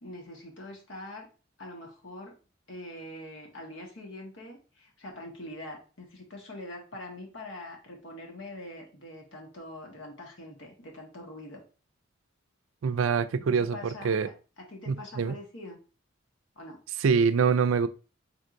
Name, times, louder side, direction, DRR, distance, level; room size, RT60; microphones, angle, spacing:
voice 1, 0.0-1.3 1.6-2.4 2.7-11.6 13.5-15.8 16.5-16.8, left 1 dB, 70° left, 1.3 m, -44 dB
voice 2, 12.8-13.8 14.0-14.3 14.9-15.3 17.0-17.9, right 6 dB, 80° right, 0.4 m, -24 dB
4.4 x 3.5 x 2.5 m
head